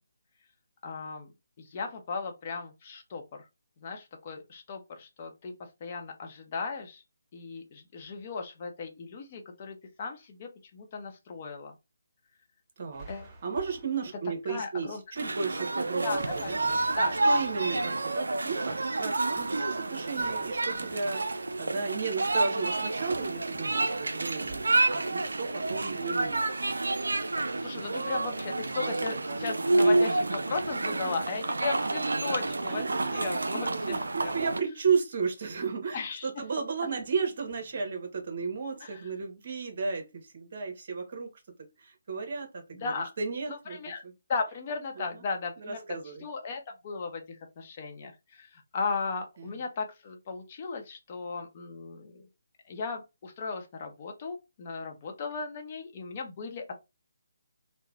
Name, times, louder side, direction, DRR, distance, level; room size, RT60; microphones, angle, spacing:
voice 1, 0.8-1.3 1.6-3.2 3.8-5.5 5.8-7.0 7.3-11.7 13.1-13.3 14.5-15.0 16.0-16.5 17.0-17.3 27.6-32.8 33.1-34.0 34.2-34.3 35.9-36.3 38.8-39.0 42.7-43.1 43.5-44.0 44.3-45.9 46.2-52.3 52.7-56.7, left 4 dB, 35° left, 0.7 m, -36 dB
voice 2, 12.8-13.1 13.4-16.8 17.2-26.5 26.8-26.9 31.0-31.1 32.7-41.3 41.8-44.1 45.0-45.2 45.6-46.3 49.4-49.6, right 5 dB, 45° right, 1.0 m, -34 dB
sound 1, 12.9-14.3 16.1-23.4 23.8-24.1 24.5-24.9, right 2 dB, 5° right, 1.2 m, -52 dB
sound 2, 15.2-34.6, right 2 dB, 75° right, 0.4 m, -29 dB
3.1 x 2.1 x 2.4 m
figure-of-eight pair, 150°, 0 cm